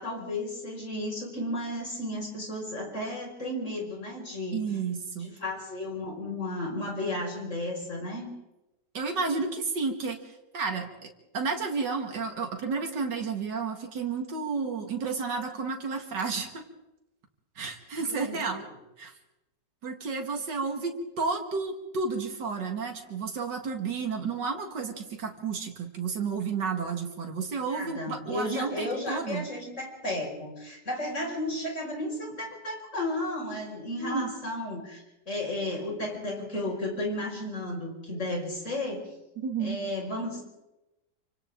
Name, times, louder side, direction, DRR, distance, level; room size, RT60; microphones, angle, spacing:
voice 1, 0.0-4.6 5.2-8.3 18.0-18.6 27.7-39.1 39.6-40.4, left 1 dB, 45° left, 0 dB, 6.2 m, -33 dB
voice 2, 4.5-5.3 8.9-11.1 11.3-16.6 17.6-18.6 19.0-19.1 19.8-29.5 34.0-34.3 39.4-39.8, right 4 dB, 90° right, 3 dB, 2.6 m, -31 dB
28.0 x 25.5 x 3.8 m, 0.94 s
omnidirectional pair, 1.8 m